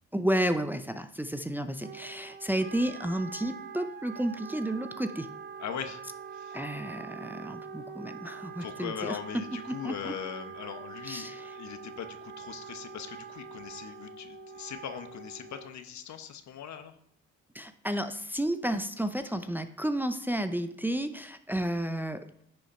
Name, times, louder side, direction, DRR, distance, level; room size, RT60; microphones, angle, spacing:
voice 1, 0.1-5.3 6.5-10.1 11.0-11.5 17.5-22.4, right 1 dB, 5° right, 8 dB, 0.6 m, -32 dB
Wind instrument woodwind instrument, 1.8-15.9, right 6 dB, 35° right, 0.9 m, -44 dB
voice 2, 5.6-6.0 6.3-6.6 8.6-16.9, left 8 dB, 65° left, 8 dB, 1.2 m, -40 dB
10.5 x 6.4 x 4.4 m, 0.72 s
cardioid pair, 90°, 30 cm